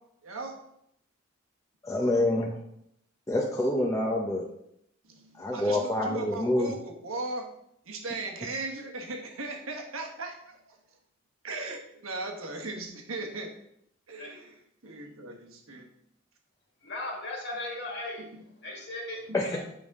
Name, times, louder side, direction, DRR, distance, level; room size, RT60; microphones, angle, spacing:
voice 1, 0.2-0.6 5.0-7.5 7.8-10.8 11.4-13.5 14.1-14.6 14.8-15.9 19.3-19.4, right 2 dB, 90° right, 3 dB, 1.3 m, -38 dB
voice 2, 1.8-2.6 3.3-4.5 5.4-6.7 19.3-19.6, left 1 dB, 15° left, -2 dB, 0.7 m, -27 dB
voice 3, 16.8-19.6, left 2 dB, 55° left, -1 dB, 1.9 m, -37 dB
8.3 x 5.4 x 3.6 m, 0.74 s
head